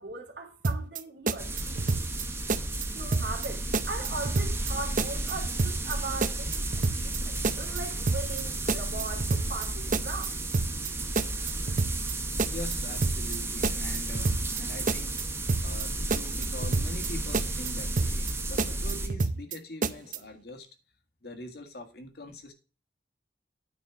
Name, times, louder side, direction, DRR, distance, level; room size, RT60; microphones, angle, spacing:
voice 1, 0.0-1.9 2.9-6.5 6.9-10.4, right 3 dB, 75° right, 2.3 m, -39 dB
sound 1, 0.6-1.0 1.3-2.2 2.5-2.9 3.1-3.5 3.7-4.7 5.0-5.3 5.6-5.9 6.2-7.2 7.4-7.8 8.1-8.4 8.7-9.7 9.9-10.3 10.5-10.9 11.2-12.1 12.4-12.8 13.0-13.4 13.6-14.6 14.9-15.2 15.5-15.8 16.1-17.1 17.3-17.7 18.0-18.3 18.6-19.6 19.8-20.2, right 3 dB, 45° right, 0.6 m, -28 dB
sound 2, 1.4-19.1, right 2 dB, 15° right, 1.1 m, -33 dB
voice 2, 12.5-15.2 15.6-20.7 21.2-22.5, left 1 dB, 60° left, 1.7 m, -43 dB
9.4 x 4.2 x 5.8 m
head